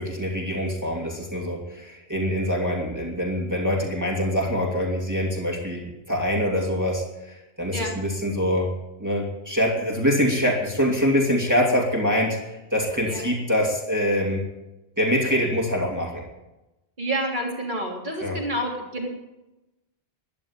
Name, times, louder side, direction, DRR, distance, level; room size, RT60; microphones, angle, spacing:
voice 1, 0.0-8.7 9.0-14.4 15.0-16.2 18.2-18.4, equal, 15° right, -3 dB, 2.7 m, -24 dB
voice 2, 17.0-19.1, right 1 dB, 50° right, -1 dB, 3.5 m, -28 dB
13.0 x 10.5 x 8.8 m, 1.0 s
omnidirectional pair, 1.0 m